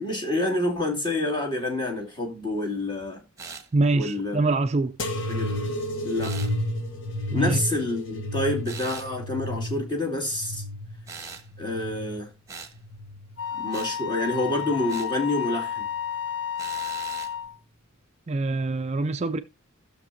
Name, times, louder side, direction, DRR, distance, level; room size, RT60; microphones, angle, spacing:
voice 1, 0.0-3.2 3.9-4.4 5.3-5.6 6.0-6.3 7.3-10.6 11.6-12.3 13.6-15.9, left 2 dB, 20° left, 2.5 m, -28 dB
sound 1, 3.4-3.7 6.2-6.5 8.7-9.1 11.1-11.5 12.5-12.8 13.7-13.9 14.9-15.1 16.6-17.3, right 5 dB, 15° right, 1.2 m, -40 dB
voice 2, 3.7-5.0 7.3-7.6 18.3-19.4, right 2 dB, 30° right, 0.4 m, -24 dB
sound 2, 5.0-12.2 12.7-13.5 14.3-14.8 15.8-15.9, left 1 dB, 60° left, 1.2 m, -32 dB
Wind instrument woodwind instrument, 13.4-17.6, left 8 dB, 85° left, 1.0 m, -31 dB
16.5 x 6.5 x 2.7 m
head